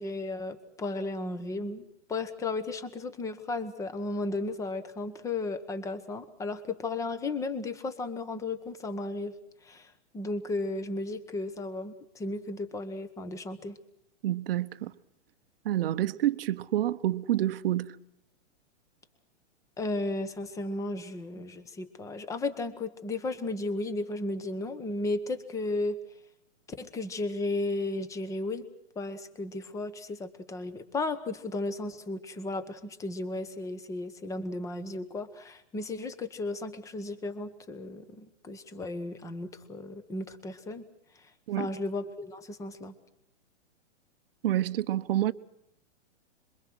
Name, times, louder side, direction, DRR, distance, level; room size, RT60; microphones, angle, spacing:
voice 1, 0.0-9.3 9.6-13.8 19.8-26.0 26.8-28.7 28.9-40.8 41.6-43.0, left 2 dB, 10° left, 1.1 m, -34 dB
voice 2, 14.2-14.9 15.6-17.9 41.5-41.7 44.4-45.3, right 13 dB, 50° right, 1.0 m, -28 dB
26.5 x 23.0 x 6.3 m
hypercardioid pair, 155°, 38 cm